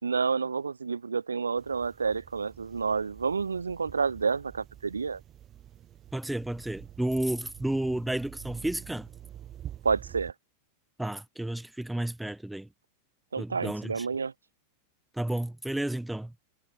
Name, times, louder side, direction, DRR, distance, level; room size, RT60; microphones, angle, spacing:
voice 1, 0.0-5.2 9.8-10.3 13.3-14.3, right 5 dB, 75° right, 2.3 m, -29 dB
sound 1, 1.6-10.3, right 11 dB, 30° right, 5.1 m, -47 dB
voice 2, 6.1-9.1 11.0-12.7 13.4-14.1 15.2-16.3, right 1 dB, 5° right, 0.9 m, -32 dB
figure-of-eight pair, 90°, 0 cm